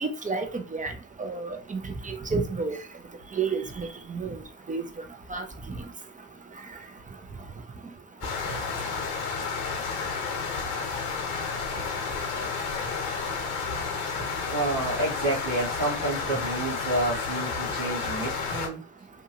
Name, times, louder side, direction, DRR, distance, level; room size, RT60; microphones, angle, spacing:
voice 1, 0.0-0.9 1.2-2.8 3.4-4.4 4.7-4.8 5.3-5.4, right 4 dB, 20° right, 0.6 m, -30 dB
sound 1, 8.2-18.7, left 5 dB, 75° left, 0.9 m, -31 dB
voice 2, 14.5-18.8, right 2 dB, 90° right, 1.2 m, -29 dB
2.6 x 2.5 x 2.8 m
hypercardioid pair, 45°, 42 cm